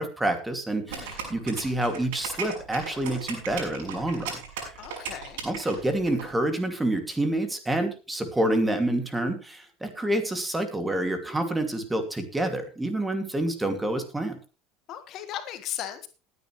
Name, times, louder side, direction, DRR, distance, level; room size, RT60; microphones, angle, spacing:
voice 1, 0.0-4.3 5.4-14.4, right 1 dB, 10° right, 7 dB, 2.4 m, -28 dB
voice 2, 0.9-1.5 4.8-5.4 14.9-16.1, left 11 dB, 50° left, 9 dB, 1.5 m, -37 dB
sound 1, 0.9-6.2, right 6 dB, 90° right, 6.1 m, -36 dB
19.5 x 9.6 x 3.2 m, 0.32 s
supercardioid pair, 115°, 0 cm